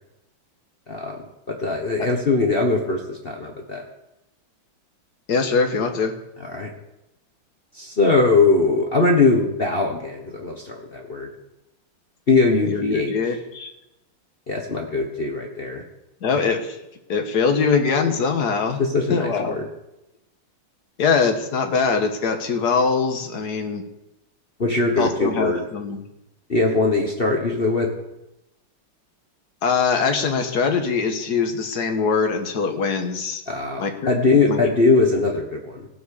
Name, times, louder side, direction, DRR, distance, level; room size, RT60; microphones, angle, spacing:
voice 1, 0.9-1.2 1.5-3.9 6.5-6.7 7.7-11.3 12.3-13.1 14.5-15.8 18.8-19.7 24.6-25.7 26.5-27.9 33.5-35.9, left 3 dB, 35° left, 1 dB, 1.2 m, -21 dB
voice 2, 5.3-6.1 12.7-13.7 16.2-16.8 17.1-18.8 19.1-19.6 21.0-23.8 25.0-26.0 29.6-33.4 33.8-33.9 34.5-34.6, left 5 dB, 55° left, 6 dB, 1.8 m, -22 dB
17.0 x 6.2 x 6.5 m, 0.91 s
omnidirectional pair, 2.3 m